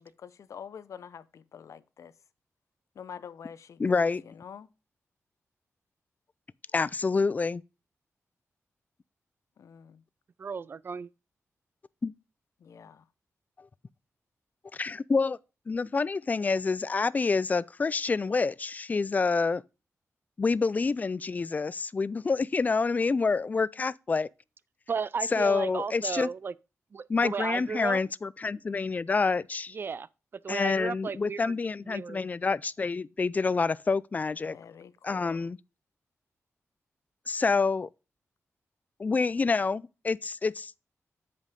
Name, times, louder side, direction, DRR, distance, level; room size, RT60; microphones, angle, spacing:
voice 1, 0.0-2.2 2.9-4.7 9.6-10.0 12.6-13.1 34.4-35.5, left 7 dB, 75° left, 0.6 m, -47 dB
voice 2, 3.8-4.2 6.7-7.6 12.0-12.1 14.7-15.4 15.7-19.6 20.4-24.3 25.3-26.3 27.1-29.8 30.5-34.6 35.0-35.6 37.3-37.9 39.0-40.9, left 4 dB, 30° left, 0.3 m, -27 dB
voice 3, 10.4-11.1 24.9-26.5 26.9-28.0 29.7-30.1 30.4-31.4 31.9-32.2, right 5 dB, 45° right, 0.4 m, -34 dB
8.1 x 5.2 x 5.2 m
wide cardioid pair, 115°, 5 cm